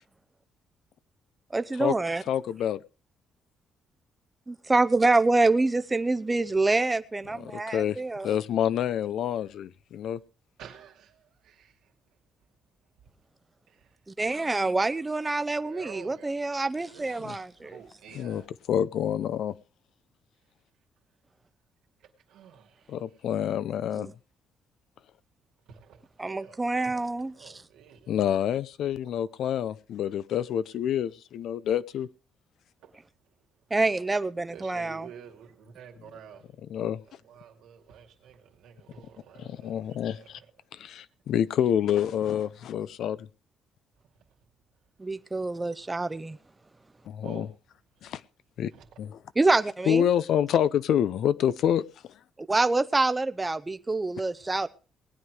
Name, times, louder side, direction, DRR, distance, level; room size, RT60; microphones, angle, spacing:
voice 1, 1.5-2.2 4.5-8.3 14.2-17.8 24.0-24.1 26.2-27.5 33.7-35.1 45.0-46.4 49.4-50.0 52.5-54.7, right 2 dB, 20° right, 0.7 m, -26 dB
voice 2, 2.3-2.8 7.3-10.2 17.2-17.4 18.1-18.4 18.7-19.6 22.9-24.1 28.1-32.1 36.7-37.0 39.4-40.4 40.7-43.3 47.1-47.5 48.0-48.2 48.6-48.7 49.0-49.2 49.9-51.8, left 9 dB, 75° left, 0.6 m, -27 dB
voice 3, 10.6-11.9 13.0-13.1 13.7-14.0 15.5-18.5 22.0-23.3 25.6-28.1 29.2-29.3 32.8-33.0 33.3-33.4 34.5-36.5 36.8-40.5 45.5-45.6 47.2-47.5 47.9-48.1 48.7-49.0 54.4-54.7, right 8 dB, 85° right, 2.4 m, -50 dB
19.0 x 9.4 x 4.9 m
cardioid pair, 90°, 0 cm